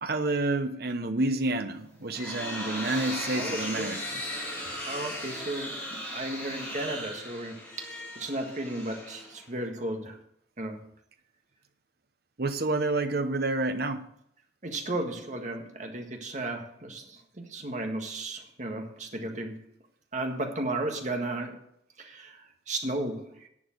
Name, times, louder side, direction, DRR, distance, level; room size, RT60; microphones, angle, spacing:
voice 1, 0.0-4.0 12.4-14.0, right 2 dB, 60° right, 9 dB, 1.0 m, -29 dB
sound 1, 1.8-9.6, left 1 dB, 10° left, 4.3 m, -37 dB
voice 2, 3.3-4.0 4.9-10.2 10.6-10.8 14.6-19.6 20.1-21.6 22.0-23.5, right 2 dB, 40° right, 3 dB, 1.7 m, -34 dB
11.0 x 7.0 x 6.5 m, 0.72 s
head